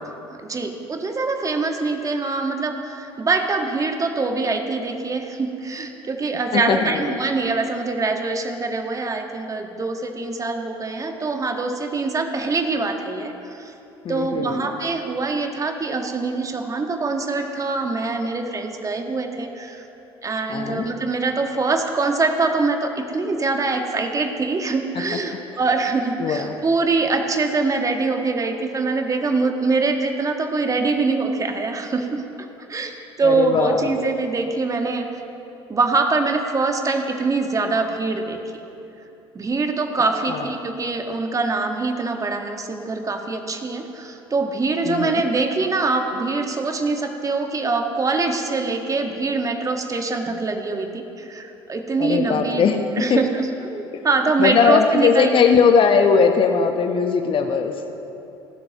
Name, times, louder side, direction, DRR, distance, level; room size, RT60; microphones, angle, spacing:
voice 1, 0.4-13.7 14.1-19.8 20.2-32.2 32.7-35.1 35.7-38.6 39.3-52.6 53.0-55.5, right 3 dB, 25° right, 4 dB, 1.6 m, -24 dB
voice 2, 6.5-7.2 14.0-14.7 20.5-20.9 24.9-25.0 26.2-26.5 33.2-33.9 40.3-40.5 44.8-45.2 52.0-53.2 53.9-54.1 54.4-57.8, left 6 dB, 40° left, 6 dB, 1.1 m, -19 dB
29.5 x 12.5 x 3.0 m, 2.9 s
figure-of-eight pair, 60°, 13 cm